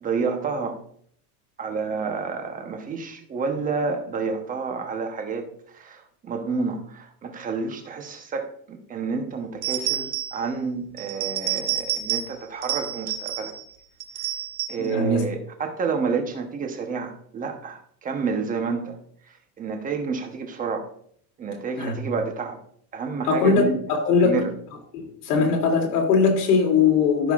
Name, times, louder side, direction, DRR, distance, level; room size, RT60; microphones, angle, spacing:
voice 1, 0.0-0.8 1.6-13.5 14.7-19.0 19.6-20.9 21.4-22.6 22.9-23.8 24.2-24.5, right 5 dB, 20° right, 1.0 m, -29 dB
sound 1, 9.6-10.5 11.0-12.4 12.6-13.6 14.0-14.9, right 11 dB, 85° right, 1.2 m, -29 dB
voice 2, 14.8-15.2 21.8-21.9 23.2-24.4 24.9-27.3, left 5 dB, 90° left, 3.0 m, -20 dB
14.5 x 5.7 x 2.4 m
supercardioid pair, 150°, 45 cm